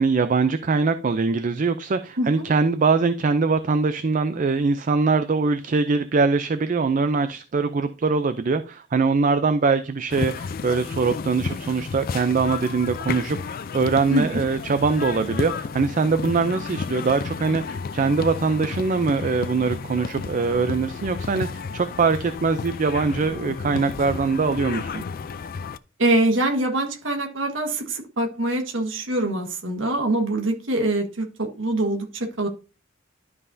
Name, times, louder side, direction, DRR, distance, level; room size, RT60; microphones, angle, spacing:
voice 1, 0.0-25.0, right 4 dB, 40° right, 11 dB, 0.4 m, -22 dB
sound 1, 10.1-25.8, left 5 dB, 50° left, 0.4 m, -32 dB
voice 2, 26.0-32.5, right 1 dB, 90° right, 3 dB, 1.5 m, -24 dB
12.0 x 5.5 x 2.6 m, 0.33 s
head